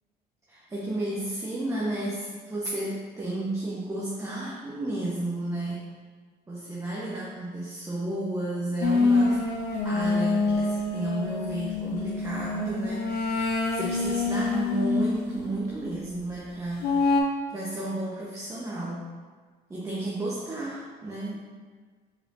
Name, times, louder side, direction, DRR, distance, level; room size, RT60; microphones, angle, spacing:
voice 1, 0.5-5.9 6.5-9.4 9.8-16.9 17.5-19.1 19.7-21.4, right 1 dB, 20° right, -6 dB, 0.9 m, -32 dB
sound 1, 8.8-15.4 16.8-17.2, left 3 dB, 80° left, 0.7 m, -26 dB
4.5 x 4.4 x 2.6 m, 1.5 s
cardioid pair, 110°, 17 cm